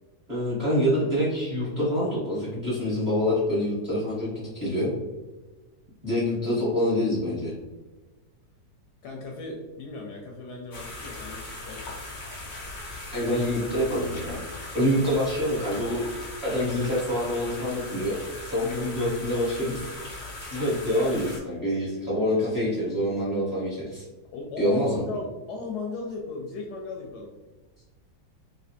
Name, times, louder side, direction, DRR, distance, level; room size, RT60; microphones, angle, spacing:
voice 1, 0.3-4.9 6.0-7.5 13.1-14.4 14.7-16.0 16.4-18.2 18.4-24.0 24.6-25.0, equal, 30° right, -9 dB, 0.9 m, -26 dB
voice 2, 9.0-11.8 24.3-27.3, left 3 dB, 75° left, 0 dB, 1.0 m, -36 dB
sound 1, 10.7-21.4, left 2 dB, 55° left, 0.8 m, -39 dB
3.2 x 2.7 x 2.7 m, 1.2 s
omnidirectional pair, 2.0 m